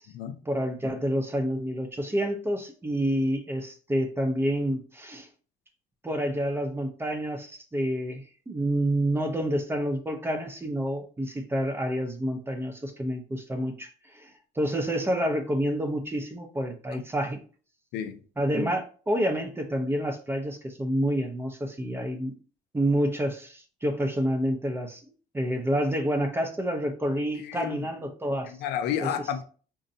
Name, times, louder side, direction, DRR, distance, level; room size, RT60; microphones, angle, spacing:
voice 1, 0.5-5.3 6.0-14.3 14.6-17.4 18.4-22.3 22.7-25.0 25.3-28.5 29.0-29.1, equal, 15° right, 0.5 m, -28 dB
voice 2, 17.9-18.2 27.4-27.9 28.4-29.4, left 9 dB, 85° left, 0.4 m, -31 dB
3.9 x 2.2 x 2.6 m
cardioid pair, 110°, 17 cm